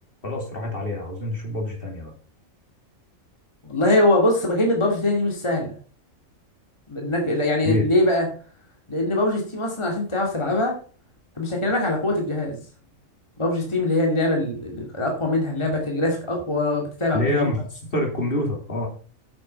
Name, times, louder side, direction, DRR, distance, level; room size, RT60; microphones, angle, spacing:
voice 1, 0.2-2.1 7.6-7.9 17.1-18.9, left 1 dB, 45° left, 1 dB, 3.2 m, -26 dB
voice 2, 3.7-5.8 6.9-8.3 8.9-10.8 11.4-12.6 13.4-17.5, left 1 dB, 20° left, 1 dB, 2.3 m, -22 dB
8.6 x 7.5 x 5.7 m, 0.39 s
omnidirectional pair, 1.4 m